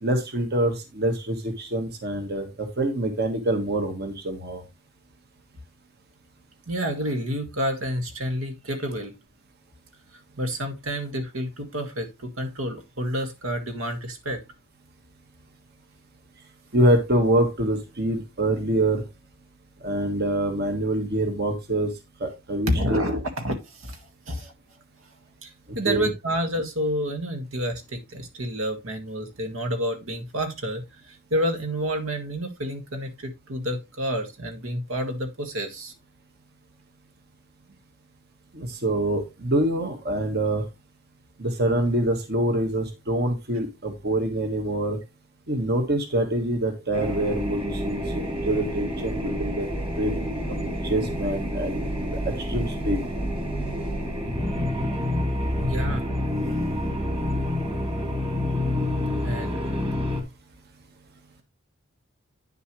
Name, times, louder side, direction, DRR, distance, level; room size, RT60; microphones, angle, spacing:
voice 1, 0.0-4.6 16.7-19.0 19.8-21.9 22.2-23.2 25.8-26.1 38.5-40.6 41.4-45.0 45.5-49.7 50.0-53.0, right 1 dB, 50° right, 1.5 m, -25 dB
voice 2, 6.7-9.1 10.4-14.4 22.7-24.0 24.3-24.5 25.4-35.9 55.6-56.1 59.2-60.0, equal, 80° right, 1.8 m, -29 dB
sound 1, 46.9-60.2, left 1 dB, 25° right, 2.6 m, -28 dB
9.6 x 6.8 x 3.1 m
head